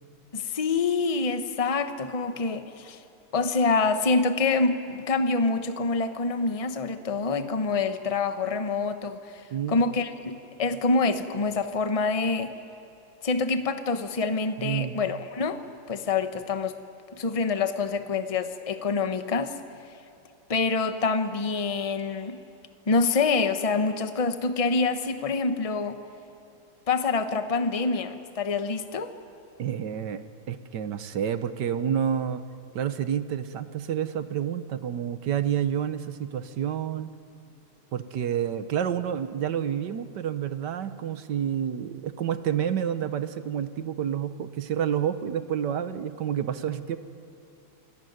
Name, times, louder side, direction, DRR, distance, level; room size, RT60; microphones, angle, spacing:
voice 1, 0.3-3.0 3.3-9.2 9.7-12.5 13.2-15.6 15.9-16.8 17.2-19.5 20.5-22.4 22.9-26.0 26.9-29.1, left 4 dB, 25° left, 9 dB, 0.8 m, -26 dB
voice 2, 14.6-15.0 29.6-32.4 32.7-37.1 37.9-47.0, right 9 dB, 65° right, 12 dB, 1.5 m, -29 dB
27.5 x 19.0 x 9.4 m, 2.8 s
omnidirectional pair, 2.2 m